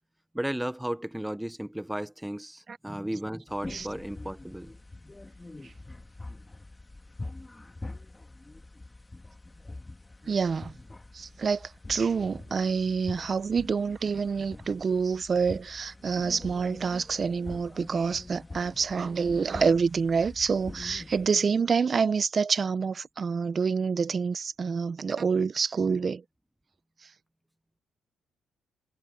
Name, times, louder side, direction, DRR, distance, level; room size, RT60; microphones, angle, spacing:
voice 1, 0.3-4.7, right 1 dB, 5° right, 1.1 m, -34 dB
sound 1, 3.5-21.3, left 2 dB, 15° left, 1.9 m, -44 dB
voice 2, 10.3-10.7 11.1-26.2, right 5 dB, 40° right, 1.0 m, -27 dB
cardioid pair, 90°, 0 cm